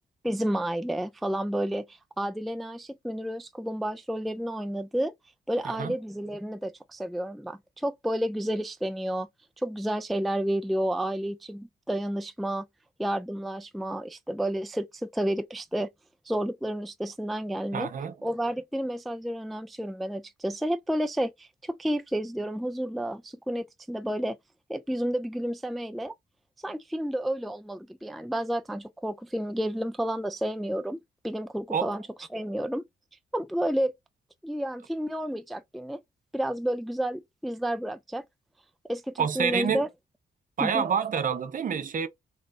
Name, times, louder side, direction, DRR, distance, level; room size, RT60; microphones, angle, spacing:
voice 1, 0.2-5.1 5.5-9.3 9.6-12.7 13.0-15.9 16.3-17.9 18.2-24.4 24.7-26.1 26.6-32.0 32.3-32.8 33.3-33.9 34.4-36.0 36.3-38.2 38.9-39.9 40.6-40.8, right 1 dB, ahead, 0.3 m, -31 dB
voice 2, 5.6-5.9 17.7-18.2 31.7-32.0 39.2-39.8 40.6-42.1, right 7 dB, 50° right, 0.7 m, -28 dB
4.0 x 2.3 x 3.7 m
cardioid pair, 100°, 17 cm